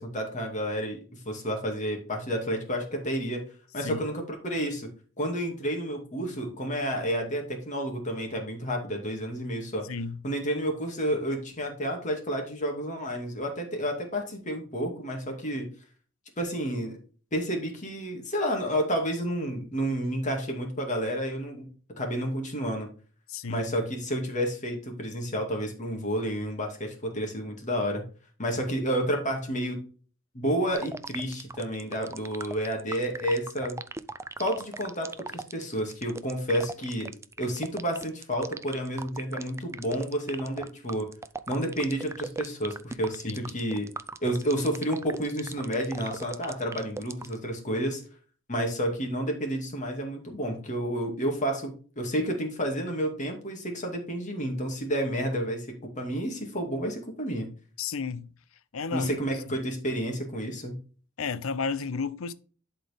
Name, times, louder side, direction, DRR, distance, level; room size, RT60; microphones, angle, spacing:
voice 1, 0.0-3.4 3.7-4.9 5.2-9.9 10.2-15.7 16.4-17.0 17.3-21.7 22.0-22.9 23.5-28.0 28.4-29.8 30.3-33.8 34.4-37.1 37.4-41.1 41.5-43.9 44.2-48.0 48.5-57.5 58.9-60.8, equal, 35° left, 2.3 m, -30 dB
voice 2, 9.8-10.2 23.3-23.7 43.3-43.5 57.8-58.3 58.7-59.6 61.2-62.3, left 5 dB, 80° left, 0.6 m, -33 dB
sound 1, 30.7-47.4, right 3 dB, 15° right, 0.4 m, -38 dB
11.5 x 4.4 x 3.5 m
head